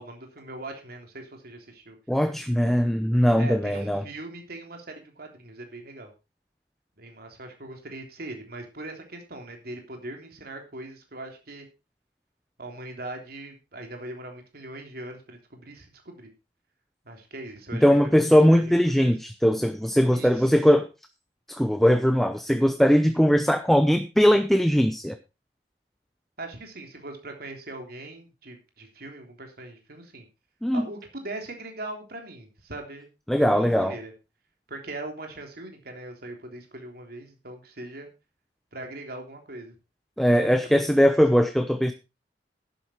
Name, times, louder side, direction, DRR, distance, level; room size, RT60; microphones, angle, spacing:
voice 1, 0.0-2.0 3.4-6.1 7.0-11.7 12.6-16.3 17.0-19.1 20.1-20.5 26.4-30.3 30.7-33.1 33.4-34.1 34.7-38.1 38.7-39.7 40.3-41.4, right 2 dB, 60° right, 3.3 m, -40 dB
voice 2, 2.1-4.0 17.8-20.9 21.5-25.2 30.6-30.8 33.3-34.0 40.2-41.9, equal, ahead, 0.8 m, -20 dB
11.5 x 10.0 x 4.4 m
head